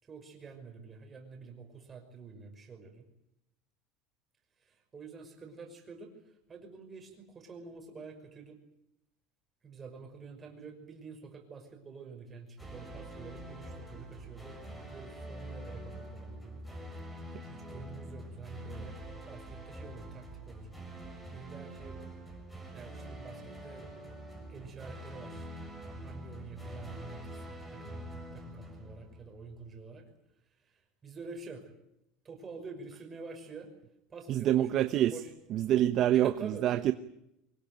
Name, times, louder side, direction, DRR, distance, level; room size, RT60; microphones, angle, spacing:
voice 1, 0.0-3.0 4.6-8.6 9.6-14.6 14.9-16.6 17.2-20.7 21.0-22.0 22.7-23.9 24.5-25.5 26.0-30.1 30.5-31.7 32.2-33.7 34.1-35.3 36.1-36.6, right 4 dB, 20° right, 3 dB, 5.8 m, -48 dB
sound 1, 12.6-29.6, right 1 dB, 5° left, 6.6 m, -45 dB
voice 2, 34.3-35.2 35.5-36.9, right 12 dB, 40° right, 11 dB, 0.9 m, -26 dB
24.0 x 21.5 x 9.2 m, 0.82 s
cardioid pair, 160°, 0 cm